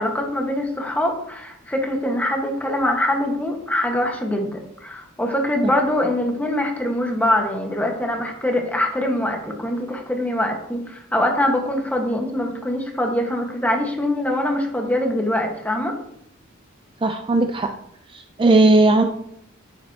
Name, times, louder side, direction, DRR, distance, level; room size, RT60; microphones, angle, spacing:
voice 1, 0.0-16.0, left 1 dB, 10° left, 2 dB, 1.4 m, -23 dB
voice 2, 17.0-17.7 18.1-19.0, right 2 dB, 25° right, 6 dB, 0.4 m, -17 dB
10.5 x 7.6 x 2.9 m, 0.73 s
head